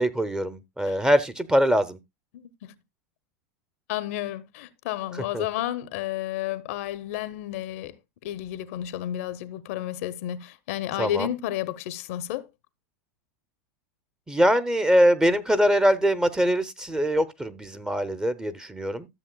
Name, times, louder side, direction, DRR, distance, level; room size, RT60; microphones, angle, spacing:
voice 1, 0.0-2.0 5.3-5.4 11.0-11.3 14.3-19.1, equal, 10° right, 0.7 m, -23 dB
voice 2, 2.3-2.7 3.9-8.0 8.2-12.5, left 12 dB, 65° left, 0.7 m, -31 dB
13.0 x 7.1 x 2.3 m
hypercardioid pair, 90°, 8 cm